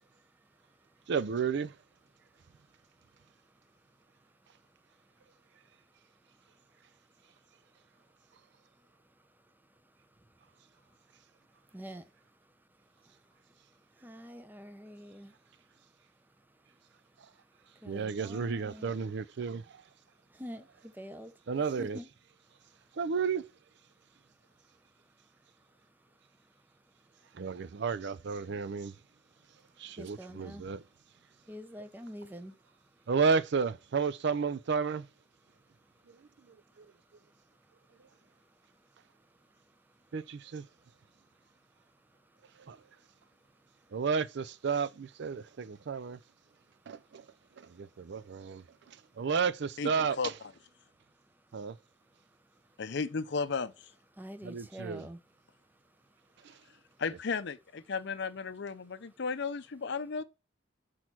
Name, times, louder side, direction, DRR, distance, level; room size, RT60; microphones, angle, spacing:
voice 1, 1.1-1.8 17.8-19.8 21.5-22.0 22.9-23.5 27.3-29.0 29.8-30.8 33.1-35.1 36.1-36.2 36.8-36.9 40.1-40.7 42.6-42.8 43.9-46.2 46.9-47.3 47.6-50.3 51.5-51.8 54.4-55.1 56.4-56.6, right 5 dB, 55° right, 0.4 m, -32 dB
voice 2, 11.7-12.0 14.0-15.3 17.8-19.1 20.4-20.6 21.0-21.3 21.8-22.1 30.0-30.6 31.5-32.5 54.2-55.2, equal, 10° right, 0.6 m, -45 dB
voice 3, 52.8-53.7 57.0-60.2, left 4 dB, 60° left, 0.6 m, -34 dB
6.3 x 4.5 x 5.9 m
head